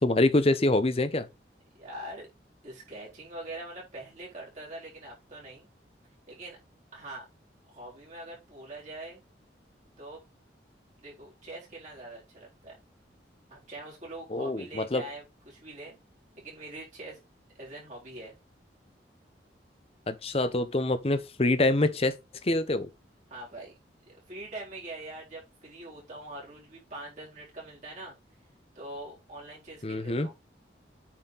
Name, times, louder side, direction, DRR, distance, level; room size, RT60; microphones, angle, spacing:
voice 1, 0.0-1.3 14.3-15.1 20.1-22.2 22.4-22.9 29.8-30.3, left 2 dB, 35° left, 0.8 m, -25 dB
voice 2, 1.8-2.3 2.6-5.7 6.3-6.6 6.9-7.3 7.7-9.2 10.0-10.2 11.0-12.8 13.5-16.0 16.3-17.2 17.6-18.3 23.3-23.7 24.1-28.2 28.7-30.3, right 1 dB, 40° right, 4.1 m, -43 dB
9.0 x 4.5 x 3.9 m
head